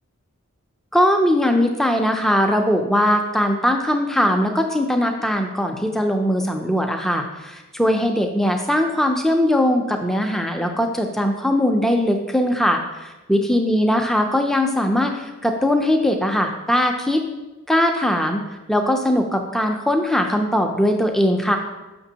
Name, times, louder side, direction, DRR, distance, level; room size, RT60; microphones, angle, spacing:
voice 1, 0.9-17.2 17.7-18.4 18.7-21.6, left 1 dB, ahead, 3 dB, 0.4 m, -20 dB
6.0 x 5.9 x 2.8 m, 1.1 s
head